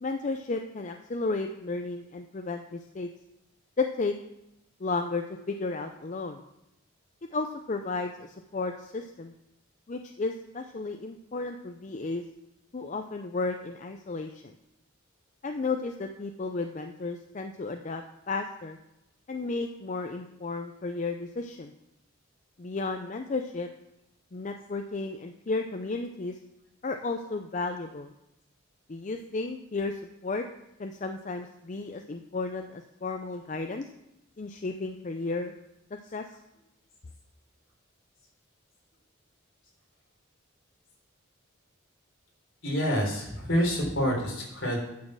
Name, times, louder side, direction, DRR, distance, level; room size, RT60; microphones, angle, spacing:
voice 1, 0.0-3.1 3.8-4.1 4.8-6.4 7.3-9.3 9.9-12.2 12.7-14.5 15.4-18.8 19.3-21.7 22.6-23.7 24.3-26.4 26.8-28.1 28.9-30.4 30.8-33.9 34.4-35.5 36.1-36.2, left 3 dB, 35° left, 5 dB, 0.5 m, -33 dB
voice 2, 42.6-44.8, equal, 65° left, -2 dB, 3.5 m, -27 dB
9.3 x 6.6 x 6.1 m, 0.87 s
head